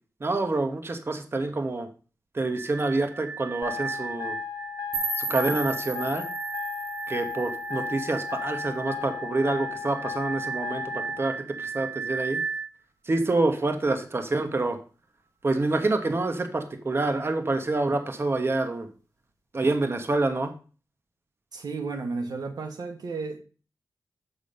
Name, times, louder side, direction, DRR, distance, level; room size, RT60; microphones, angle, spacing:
voice 1, 0.2-1.9 2.3-4.3 5.2-6.3 7.1-12.4 13.1-14.8 15.4-18.9 19.5-20.5, right 2 dB, 40° right, 1.1 m, -27 dB
sound 1, 2.5-12.7, right 5 dB, 20° right, 2.4 m, -36 dB
sound 2, 3.6-11.2, left 8 dB, 80° left, 1.3 m, -36 dB
sound 3, 4.9-7.9, right 2 dB, 65° right, 2.7 m, -34 dB
voice 2, 21.5-23.4, right 4 dB, 80° right, 1.4 m, -33 dB
7.1 x 6.8 x 5.3 m
wide cardioid pair, 100°, 7 cm